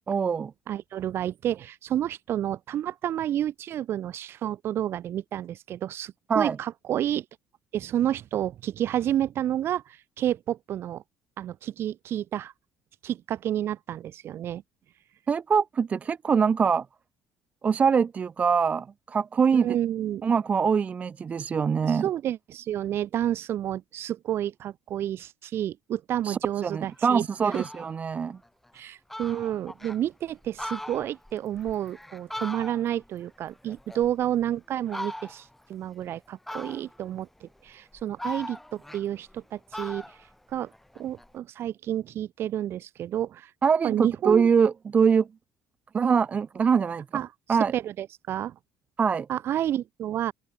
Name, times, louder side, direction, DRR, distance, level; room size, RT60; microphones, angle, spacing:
voice 1, 0.1-0.5 6.3-6.6 15.3-16.9 17.6-19.7 20.2-22.1 26.2-28.4 43.6-45.3 45.9-47.0 47.5-47.7 49.0-49.3, right 6 dB, 30° right, 0.4 m, -23 dB
voice 2, 0.7-7.2 7.7-11.0 11.4-12.5 13.0-14.6 19.5-20.2 21.8-27.3 27.5-27.6 28.7-40.0 40.5-40.7 41.0-43.5 43.8-44.5 47.1-47.3 47.7-48.6 49.3-50.3, right 11 dB, 50° right, 2.4 m, -30 dB
Fowl, 26.9-27.0 27.3-27.9 28.4-28.5 28.8-28.9 29.1-30.0 30.4-33.1 33.4-34.4 34.9-35.6 36.5-37.1 37.7-39.4 39.7-41.3, left 1 dB, 5° left, 1.6 m, -39 dB
open air
cardioid pair, 120°, 5 cm